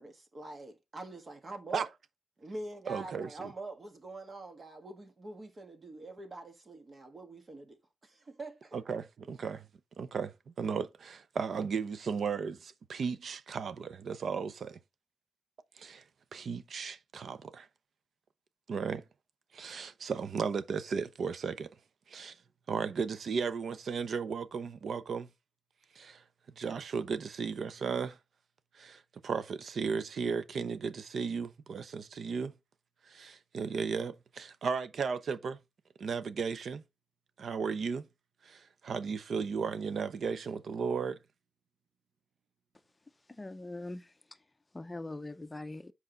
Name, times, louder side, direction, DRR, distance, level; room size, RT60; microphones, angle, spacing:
voice 1, 0.0-1.9 2.4-8.8, right 2 dB, 40° right, 1.6 m, -45 dB
voice 2, 2.9-3.3 8.7-9.7 10.0-14.8 15.8-16.0 16.3-17.7 18.7-19.0 19.5-21.7 22.1-22.4 22.7-25.3 25.9-26.2 26.6-28.2 28.7-32.5 33.0-35.6 36.0-36.8 37.4-38.1 38.4-41.2, right 5 dB, 70° right, 0.7 m, -35 dB
voice 3, 43.3-44.1 44.7-45.9, left 2 dB, 20° left, 0.6 m, -42 dB
7.9 x 4.8 x 3.9 m
wide cardioid pair, 115°, 0 cm